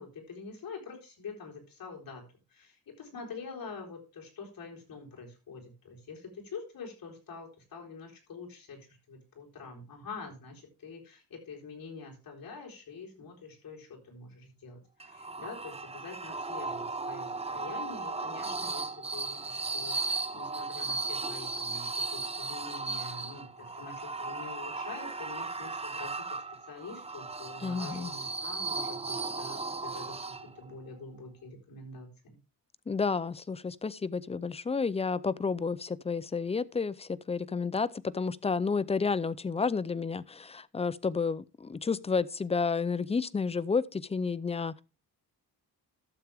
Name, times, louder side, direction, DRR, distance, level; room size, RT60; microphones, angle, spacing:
voice 1, 0.0-2.2 2.5-32.4, left 4 dB, 60° left, 4.2 m, -46 dB
sound 1, 15.0-30.7, right 3 dB, 15° right, 0.7 m, -36 dB
voice 2, 27.6-28.1 32.9-44.8, left 5 dB, 15° left, 0.4 m, -31 dB
12.5 x 7.2 x 3.5 m
cardioid pair, 95°, 39 cm